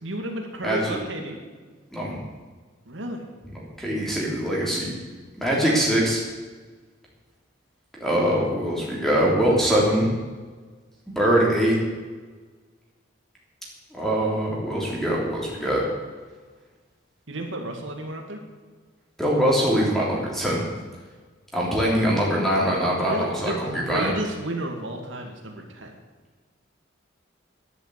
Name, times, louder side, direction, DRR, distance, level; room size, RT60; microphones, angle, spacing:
voice 1, 0.0-1.4 2.9-3.3 5.7-5.8 15.6-15.7 17.3-18.4 23.1-25.9, right 1 dB, 75° right, 2 dB, 2.1 m, -32 dB
voice 2, 0.6-1.0 1.9-2.2 3.6-4.9 5.4-6.2 8.0-10.1 11.1-11.8 14.0-15.8 19.2-20.6 21.5-24.1, equal, ahead, -4 dB, 3.4 m, -23 dB
10.5 x 10.5 x 8.2 m, 1.4 s
head